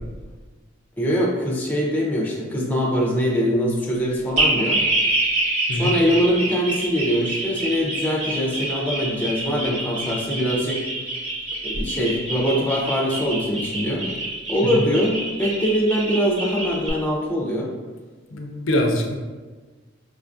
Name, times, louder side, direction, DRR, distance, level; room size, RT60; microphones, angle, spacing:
voice 1, 1.0-4.8 5.7-10.8 11.6-14.1 14.5-17.7, equal, 10° left, -3 dB, 0.5 m, -23 dB
sound 1, 4.4-16.9, right 2 dB, 35° right, 0.9 m, -26 dB
voice 2, 18.3-19.1, left 1 dB, 70° left, 2 dB, 0.4 m, -23 dB
4.7 x 2.3 x 2.5 m, 1.3 s
head